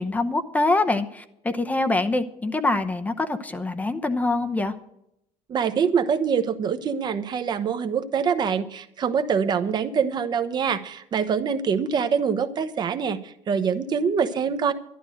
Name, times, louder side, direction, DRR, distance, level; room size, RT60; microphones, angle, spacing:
voice 1, 0.0-4.7, left 2 dB, 10° left, 9 dB, 0.8 m, -24 dB
voice 2, 5.5-14.7, right 6 dB, 35° right, 10 dB, 1.0 m, -24 dB
12.0 x 11.0 x 6.4 m, 0.77 s
cardioid pair, 160°, 13 cm